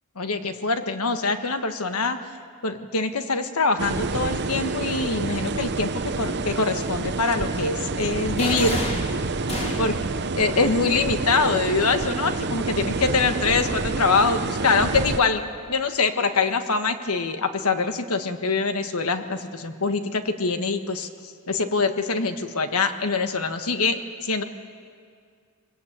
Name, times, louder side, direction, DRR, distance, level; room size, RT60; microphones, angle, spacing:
voice 1, 0.2-2.2 2.6-8.9 9.8-10.0 10.4-15.4 15.7-21.1 21.5-24.4, left 4 dB, 75° left, 8 dB, 1.4 m, -24 dB
sound 1, 3.8-15.2, right 3 dB, 50° right, 0.8 m, -28 dB
sound 2, 8.4-10.1, left 1 dB, 30° left, 3.4 m, -30 dB
23.5 x 21.0 x 8.8 m, 2.1 s
head